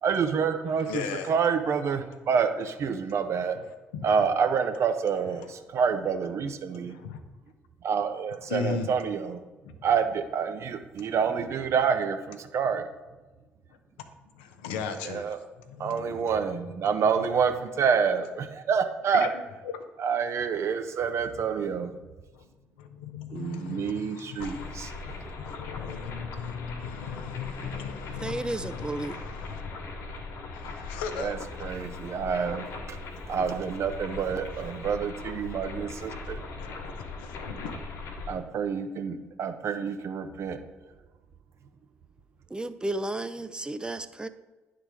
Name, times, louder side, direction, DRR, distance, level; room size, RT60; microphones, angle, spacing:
voice 1, 0.0-3.6 4.0-6.9 7.8-9.4 9.8-12.9 15.0-15.4 15.8-19.3 20.0-21.9 23.3-24.9 31.2-33.0 33.3-36.4 38.3-40.6, right 6 dB, 60° right, 8 dB, 0.8 m, -28 dB
voice 2, 0.8-1.3 3.9-4.3 6.9-7.2 8.5-8.9 9.6-9.8 14.3-15.4 15.6-16.2 19.1-19.3 19.6-19.7 22.3-22.5 22.8-29.7 30.1-31.3 34.2-34.7 35.4-35.7 36.0-37.7, left 6 dB, 85° left, 7 dB, 0.7 m, -38 dB
sound 1, 24.4-38.3, left 3 dB, 65° left, 1.4 m, -39 dB
voice 3, 28.2-29.2 42.5-44.3, right 2 dB, 15° right, 12 dB, 0.6 m, -32 dB
10.0 x 3.9 x 4.7 m, 1.2 s
hypercardioid pair, 50°, 5 cm